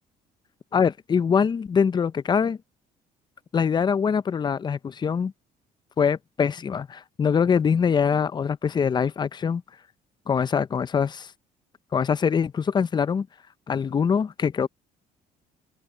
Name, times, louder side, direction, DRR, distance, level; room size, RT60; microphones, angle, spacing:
voice 1, 0.7-2.6 3.5-5.3 6.0-9.6 10.3-11.3 11.9-13.3 13.7-14.7, left 6 dB, 25° left, 0.5 m, -23 dB
open air
cardioid pair, 110°, 17 cm